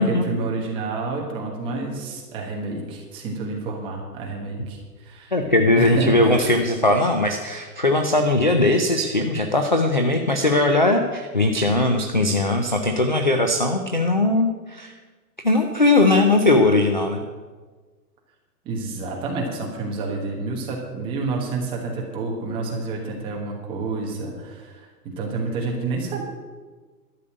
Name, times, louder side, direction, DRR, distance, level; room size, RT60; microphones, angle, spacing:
voice 1, 0.0-5.3 5.8-6.4 18.6-24.9 25.1-26.2, right 3 dB, 10° right, -1 dB, 1.3 m, -29 dB
voice 2, 5.3-14.9 15.4-17.2, left 2 dB, 30° left, 5 dB, 0.4 m, -19 dB
12.0 x 6.6 x 8.5 m, 1.4 s
hypercardioid pair, 175°, 49 cm